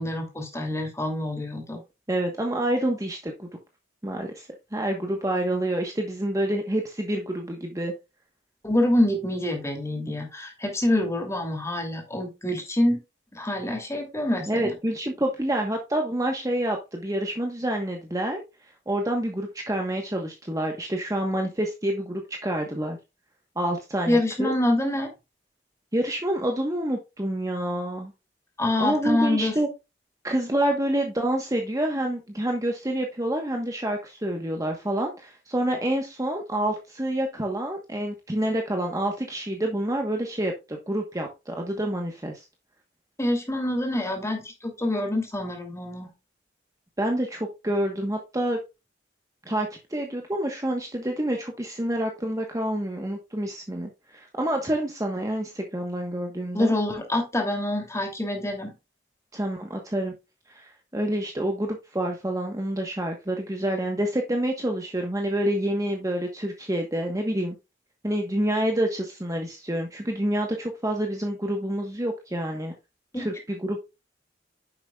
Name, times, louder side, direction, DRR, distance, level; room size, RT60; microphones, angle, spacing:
voice 1, 0.0-1.8 8.6-13.0 13.3-14.7 24.1-25.1 28.6-29.5 43.2-46.1 56.5-58.7 73.1-73.3, left 1 dB, 15° left, 2 dB, 2.9 m, -26 dB
voice 2, 2.1-3.5 4.0-7.9 14.5-18.4 18.9-23.0 23.6-24.5 25.9-28.1 28.8-29.7 30.2-42.4 47.0-48.6 49.5-56.7 59.3-60.2 60.5-67.6 68.0-72.7 73.1-73.8, right 1 dB, 20° right, 2 dB, 1.2 m, -28 dB
9.9 x 7.2 x 2.4 m, 0.25 s
head